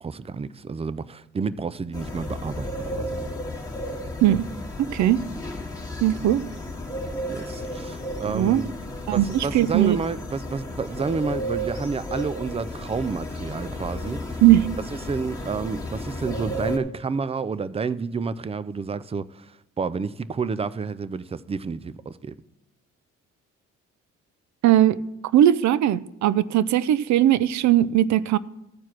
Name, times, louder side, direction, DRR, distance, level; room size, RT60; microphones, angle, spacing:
voice 1, 0.0-3.2 7.3-8.7 9.1-14.4 15.0-19.5 19.8-22.4, right 5 dB, 20° right, 0.4 m, -30 dB
sound 1, 1.9-16.8, equal, 10° left, 1.7 m, -33 dB
voice 2, 6.0-6.4 8.3-8.6 9.1-10.0 14.4-14.7 24.6-25.0 25.3-28.4, right 12 dB, 70° right, 0.5 m, -19 dB
14.0 x 4.6 x 5.9 m
cardioid pair, 90°, 30 cm